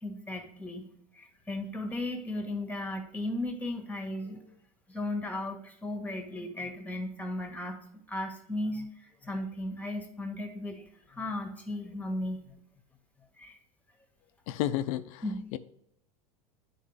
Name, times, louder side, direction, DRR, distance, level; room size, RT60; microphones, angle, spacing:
voice 1, 0.0-4.5 4.9-7.8 8.1-12.6 13.4-13.6 15.2-15.4, left 1 dB, 10° left, 3 dB, 1.6 m, -36 dB
voice 2, 14.5-15.2 15.5-15.6, left 13 dB, 65° left, 12 dB, 0.6 m, -31 dB
10.0 x 4.6 x 3.3 m, 0.75 s
hypercardioid pair, 95°, 19 cm